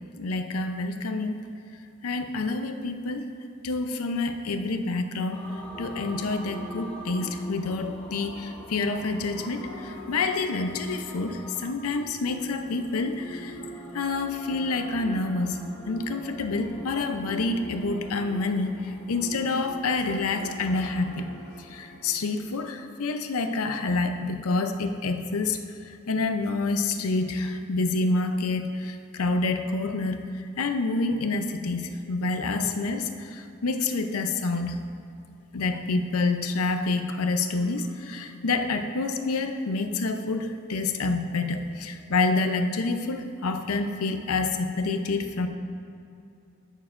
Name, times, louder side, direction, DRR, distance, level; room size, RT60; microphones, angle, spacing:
voice 1, 0.2-1.4 2.0-3.3 3.6-5.4 5.8-13.6 13.9-15.6 15.9-18.8 19.1-21.3 21.7-25.6 26.1-30.2 30.6-34.8 35.5-45.5, left 3 dB, 80° left, 7 dB, 0.6 m, -28 dB
sound 1, 5.3-22.6, right 1 dB, 5° left, 0.8 m, -43 dB
13.0 x 6.5 x 2.5 m, 2.6 s
head